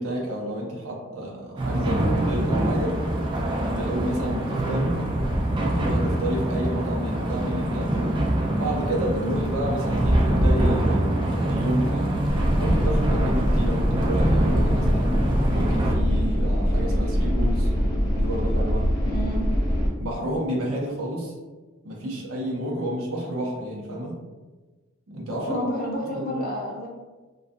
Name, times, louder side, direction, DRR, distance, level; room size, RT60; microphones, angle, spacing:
voice 1, 0.0-3.0 3.6-5.0 5.5-8.0 8.5-12.1 12.6-15.1 15.5-17.7 18.2-18.9 20.0-21.3 21.8-24.2 25.1-25.6 26.1-26.4, equal, 70° right, -2 dB, 0.7 m, -30 dB
sound 1, 1.6-15.9, right 1 dB, 20° right, 0.3 m, -24 dB
sound 2, 12.3-19.9, equal, 15° left, 0.9 m, -23 dB
voice 2, 19.1-19.5 25.5-26.9, equal, 45° left, -3 dB, 0.6 m, -30 dB
2.4 x 2.3 x 2.5 m, 1.2 s
head